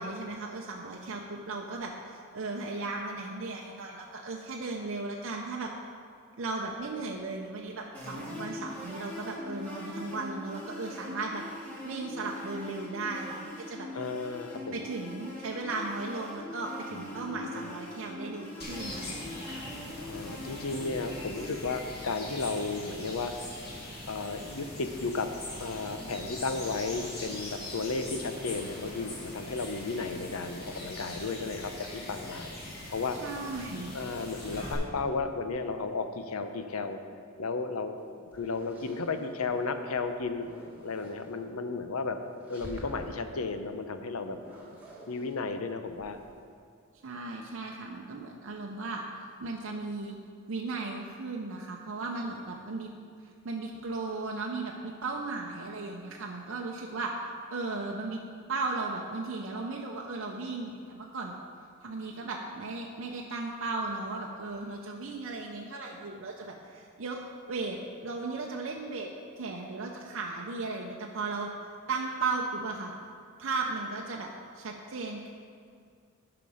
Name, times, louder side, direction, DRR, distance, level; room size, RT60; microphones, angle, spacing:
voice 1, 0.0-5.7 6.4-11.4 11.8-13.9 14.7-19.7 33.2-34.0 47.0-49.0 49.4-50.2 50.5-52.9 53.2-57.1 57.5-58.2 58.5-61.3 61.8-67.2 67.5-69.1 69.4-71.5 71.9-72.9 73.4-74.3 74.5-75.3, right 3 dB, 60° right, -1 dB, 0.6 m, -36 dB
sound 1, 7.9-21.6, left 1 dB, 5° left, 2.0 m, -42 dB
voice 2, 13.9-14.8 16.9-17.7 20.0-23.5 24.0-25.3 25.6-32.6 32.9-33.2 33.9-37.0 37.4-40.5 40.8-42.2 42.5-44.4 45.1-46.2, left 4 dB, 80° left, 8 dB, 0.7 m, -34 dB
sound 2, 18.6-34.7, left 1 dB, 50° left, 2.1 m, -42 dB
sound 3, 38.0-39.6 40.0-41.4 42.3-43.3 44.3-46.4, equal, 10° right, 1.4 m, -49 dB
11.0 x 5.9 x 4.9 m, 2.3 s
head